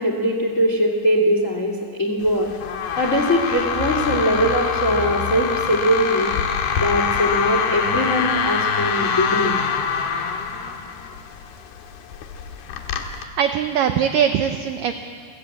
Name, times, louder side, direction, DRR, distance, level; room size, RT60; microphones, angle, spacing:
voice 1, 0.0-2.5 3.0-6.3 6.8-9.6, equal, 30° left, 3 dB, 1.4 m, -21 dB
sound 1, 2.2-13.2, left 6 dB, 70° left, 3.3 m, -25 dB
voice 2, 13.2-14.9, right 8 dB, 80° right, 7 dB, 2.0 m, -21 dB
29.0 x 16.0 x 8.4 m, 2.3 s
omnidirectional pair, 4.9 m